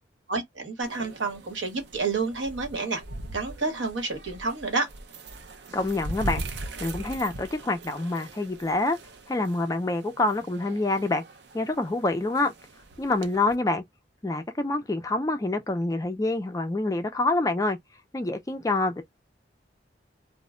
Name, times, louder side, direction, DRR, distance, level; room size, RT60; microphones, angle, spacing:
voice 1, 0.3-3.0 3.3-4.9, right 4 dB, 85° right, 1.0 m, -29 dB
sound 1, 0.8-13.6, right 2 dB, 60° right, 0.5 m, -41 dB
voice 2, 5.7-6.4 6.8-9.0 9.3-11.2 11.5-12.5 13.0-13.8 14.2-17.8 18.1-19.0, left 2 dB, 20° left, 0.3 m, -26 dB
2.1 x 2.0 x 3.6 m
head